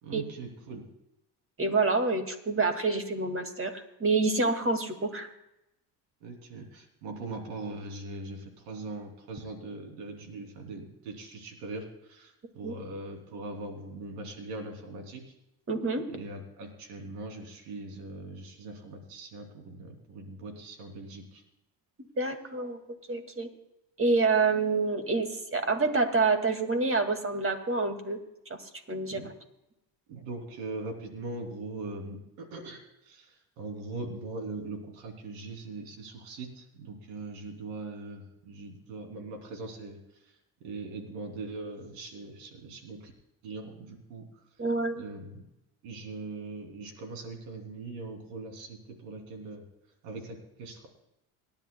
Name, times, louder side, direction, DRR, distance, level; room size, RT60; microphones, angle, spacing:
voice 1, 0.0-0.8 6.2-15.2 16.1-21.4 29.1-29.3 30.1-40.0 40.2-40.3 40.6-43.1 43.4-44.3 45.0-45.4 45.8-49.6 50.0-50.9, right 3 dB, 85° right, 3 dB, 3.1 m, -41 dB
voice 2, 1.6-5.3 12.6-12.7 15.7-16.0 22.2-22.8 23.1-23.5 24.0-28.2 28.5-28.6 28.9-29.3 44.6-45.0, right 3 dB, 25° right, 6 dB, 2.2 m, -27 dB
27.5 x 10.5 x 2.3 m, 0.87 s
supercardioid pair, 75°, 49 cm